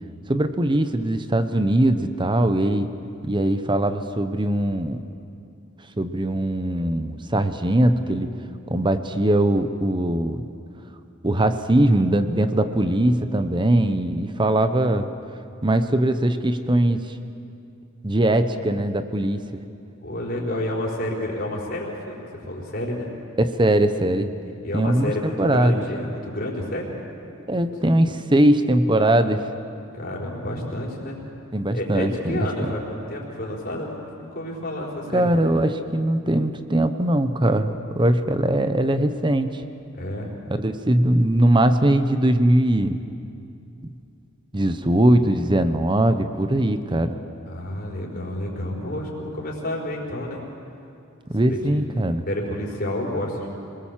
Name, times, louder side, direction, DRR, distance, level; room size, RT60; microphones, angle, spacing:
voice 1, 0.3-2.9 3.2-5.0 6.0-8.3 8.7-10.4 11.2-15.1 15.6-17.0 18.0-19.4 23.4-24.3 24.7-25.1 25.4-25.8 27.5-29.4 31.5-32.7 35.1-39.6 40.6-43.0 44.5-47.2 51.3-52.2, right 1 dB, 20° right, 9 dB, 0.9 m, -21 dB
voice 2, 20.0-23.1 24.6-26.9 29.9-31.2 31.7-35.4 39.9-40.3 47.5-50.4 51.5-51.8 52.3-53.5, left 1 dB, 45° left, -3 dB, 4.7 m, -30 dB
27.0 x 20.0 x 7.5 m, 2.6 s
head